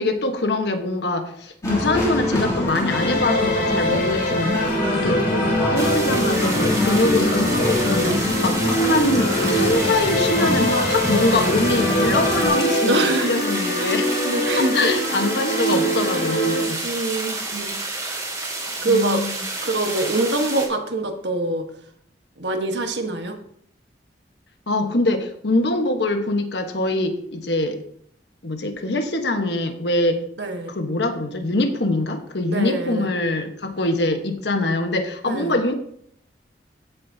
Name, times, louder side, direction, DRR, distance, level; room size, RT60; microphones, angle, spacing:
voice 1, 0.0-4.6 4.9-5.2 5.7-14.1 14.6-16.8 18.8-19.4 24.7-27.8 28.4-30.2 30.7-35.7, left 2 dB, 75° left, 6 dB, 1.2 m, -23 dB
sound 1, 1.6-12.5, left 1 dB, 20° left, 2.9 m, -24 dB
sound 2, 2.9-16.6, equal, 50° left, 3.2 m, -24 dB
voice 2, 4.7-5.0 12.8-13.4 13.8-14.9 16.8-17.7 18.8-19.2 19.6-21.6 22.4-23.4 30.4-30.7 32.5-33.1 35.2-35.5, right 2 dB, 80° right, 4 dB, 1.3 m, -24 dB
sound 3, 5.8-20.7, right 2 dB, 20° right, 2.6 m, -30 dB
15.0 x 7.0 x 2.8 m, 0.67 s
head